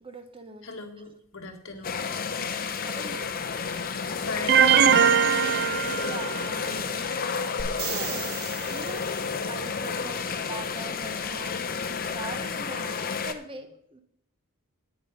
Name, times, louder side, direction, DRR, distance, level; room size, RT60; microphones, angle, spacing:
voice 1, 0.0-0.7 1.0-1.1 2.8-3.3 6.0-7.0 7.8-11.6 12.0-14.0, right 2 dB, 25° right, 8 dB, 1.0 m, -42 dB
voice 2, 0.6-2.1 4.2-5.2, left 3 dB, 60° left, 4 dB, 1.8 m, -38 dB
sound 1, 1.8-13.3, left 5 dB, 40° left, 0.8 m, -31 dB
sound 2, 4.5-6.6, right 8 dB, 50° right, 0.6 m, -21 dB
sound 3, 7.6-9.4 13.3-13.4, right 6 dB, 70° right, 1.6 m, -36 dB
10.0 x 9.2 x 5.1 m, 0.70 s
head